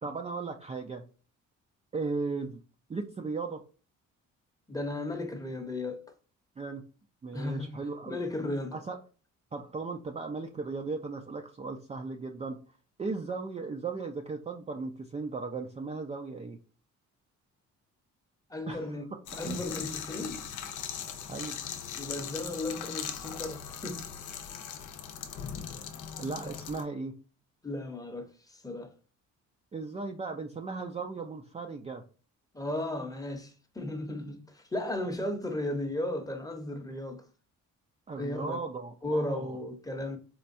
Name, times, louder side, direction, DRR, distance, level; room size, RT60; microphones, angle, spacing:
voice 1, 0.0-1.0 1.9-2.6 2.9-3.6 6.6-6.8 7.2-8.2 8.7-9.0 9.5-12.6 13.0-16.6 18.7-18.9 20.9-21.0 21.3-21.6 26.2-27.1 29.7-32.0 38.1-39.6, right 4 dB, 20° right, 0.4 m, -36 dB
voice 2, 4.7-6.0 7.3-8.8 18.5-19.0 19.4-20.4 22.0-24.0 27.6-28.9 32.5-37.2 38.2-38.6 39.0-40.2, left 1 dB, 10° left, 0.8 m, -35 dB
sound 1, 19.3-26.8, left 8 dB, 80° left, 0.7 m, -39 dB
4.3 x 2.2 x 2.5 m
cardioid pair, 90°, 30 cm